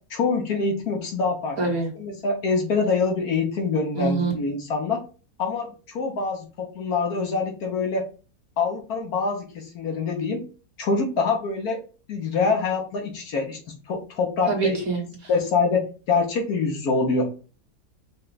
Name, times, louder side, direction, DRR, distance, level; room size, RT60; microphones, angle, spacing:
voice 1, 0.1-1.6 2.0-5.0 5.4-8.0 8.6-10.4 10.8-11.8 12.1-13.6 13.9-14.8 15.3-17.3, left 4 dB, 60° left, 2 dB, 1.3 m, -25 dB
voice 2, 1.6-1.9 3.9-4.3 14.5-15.3, right 4 dB, 55° right, -1 dB, 1.7 m, -25 dB
5.5 x 2.4 x 3.9 m, 0.36 s
omnidirectional pair, 1.9 m